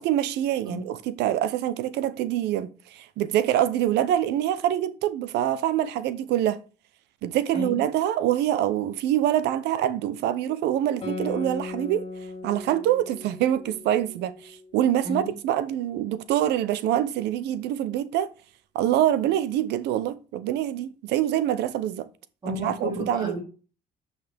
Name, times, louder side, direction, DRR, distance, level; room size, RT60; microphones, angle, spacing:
voice 1, 0.0-6.6 7.2-12.1 12.4-18.3 18.7-22.1 22.5-23.4, right 11 dB, 85° right, 0.9 m, -25 dB
Guitar, 11.0-16.0, left 3 dB, 30° left, 3.3 m, -38 dB
voice 2, 22.4-23.4, left 1 dB, 25° right, 3.9 m, -32 dB
9.2 x 5.6 x 3.5 m
cardioid pair, 110°, 17 cm